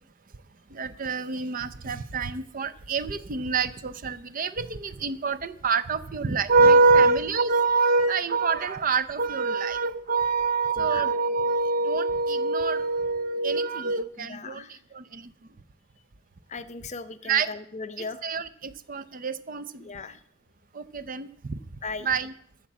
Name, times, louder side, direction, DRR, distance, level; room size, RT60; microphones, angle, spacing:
voice 1, 0.7-14.6 14.9-15.3 17.3-17.5 18.2-19.8 20.7-21.6 22.0-22.3, right 3 dB, 35° right, 14 dB, 0.5 m, -25 dB
voice 2, 14.2-14.8 16.5-18.2 19.8-20.2 21.8-22.1, left 4 dB, 30° left, 11 dB, 0.6 m, -38 dB
13.0 x 7.2 x 7.3 m, 0.65 s
head